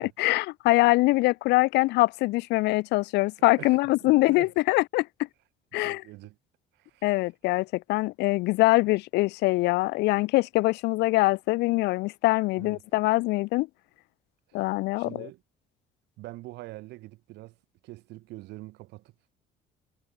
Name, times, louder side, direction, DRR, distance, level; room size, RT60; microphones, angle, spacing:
voice 1, 0.0-5.1 5.7-6.0 7.0-13.7 14.5-15.3, left 21 dB, 85° left, 0.5 m, -23 dB
voice 2, 3.6-4.5 5.8-6.4 6.7-7.2 12.6-12.9 14.5-14.6 15.0-15.4 16.2-17.6 17.8-19.3, right 19 dB, 85° right, 3.4 m, -45 dB
cardioid pair, 110°, 17 cm